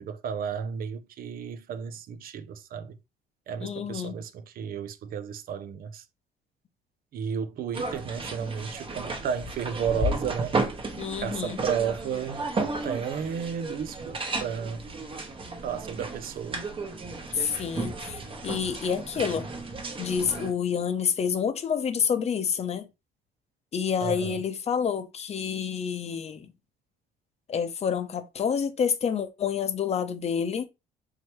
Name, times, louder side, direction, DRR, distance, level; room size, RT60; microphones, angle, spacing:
voice 1, 0.0-3.0 3.5-6.0 7.1-10.6 11.2-14.9 15.6-16.6 24.0-24.4, right 7 dB, 60° right, 0.6 m, -33 dB
voice 2, 3.6-4.2 11.0-11.6 17.3-19.5 20.0-22.9 23.7-26.5 27.5-30.7, left 7 dB, 40° left, 0.8 m, -28 dB
sound 1, 7.7-20.5, right 2 dB, 30° right, 1.1 m, -33 dB
4.7 x 3.3 x 3.0 m
cardioid pair, 110°, 17 cm